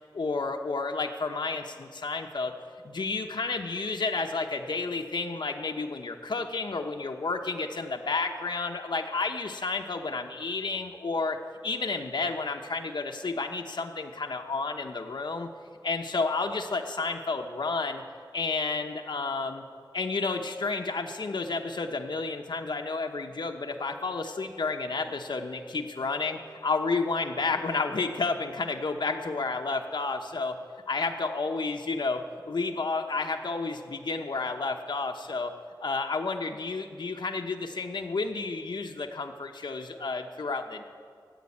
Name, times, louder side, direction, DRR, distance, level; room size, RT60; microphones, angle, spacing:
voice 1, 0.1-2.5 2.8-15.5 15.8-18.0 18.3-19.6 19.9-30.6 30.9-35.5 35.8-40.8, left 3 dB, 80° left, 3 dB, 0.9 m, -31 dB
15.5 x 8.7 x 8.4 m, 2.1 s
wide cardioid pair, 75°, 8 cm